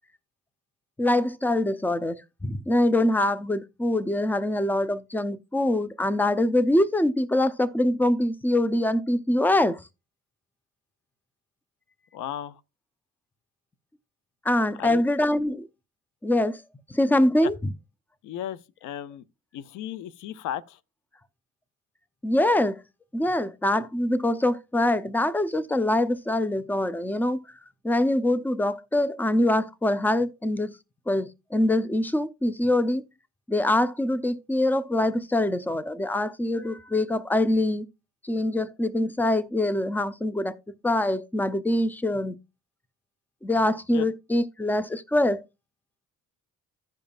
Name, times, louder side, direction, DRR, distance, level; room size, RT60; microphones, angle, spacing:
voice 1, 1.0-9.8 14.4-15.7 16.2-16.6 16.9-17.6 22.2-22.8 23.1-27.4 27.8-30.7 31.1-33.0 33.5-37.8 38.2-40.5 40.8-42.3 43.4-45.4, left 1 dB, 5° left, 0.6 m, -24 dB
voice 2, 12.1-12.6 14.8-15.1 17.4-17.5 18.2-19.2 19.5-20.8 43.9-44.1, left 11 dB, 85° left, 0.6 m, -35 dB
15.5 x 5.2 x 2.4 m
cardioid pair, 90°, 30 cm